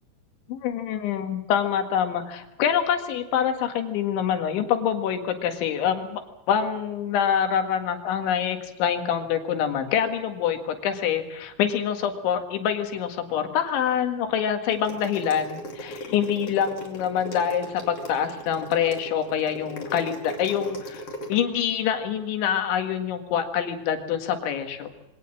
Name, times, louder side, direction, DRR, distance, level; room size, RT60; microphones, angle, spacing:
voice 1, 0.5-6.2 6.5-24.9, left 8 dB, 90° left, 6 dB, 4.2 m, -26 dB
sound 1, 14.7-21.4, left 1 dB, 35° left, 3.3 m, -38 dB
24.0 x 18.0 x 7.6 m, 0.91 s
omnidirectional pair, 5.2 m